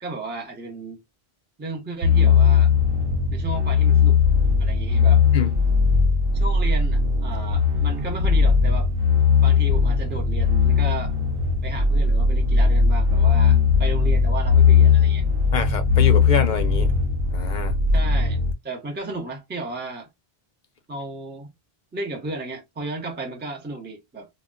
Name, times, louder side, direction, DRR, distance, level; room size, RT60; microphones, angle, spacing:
voice 1, 0.0-1.0 1.6-2.7 3.3-4.2 4.6-5.2 6.3-8.9 9.4-11.2 11.6-15.2 17.9-20.1 20.9-21.5 21.9-24.3, right 2 dB, 10° right, 0.6 m, -34 dB
sound 1, 2.0-18.5, left 5 dB, 65° right, 0.7 m, -19 dB
voice 2, 15.5-17.0 17.3-17.8, left 5 dB, 55° left, 0.6 m, -26 dB
2.2 x 2.1 x 3.6 m
omnidirectional pair, 1.1 m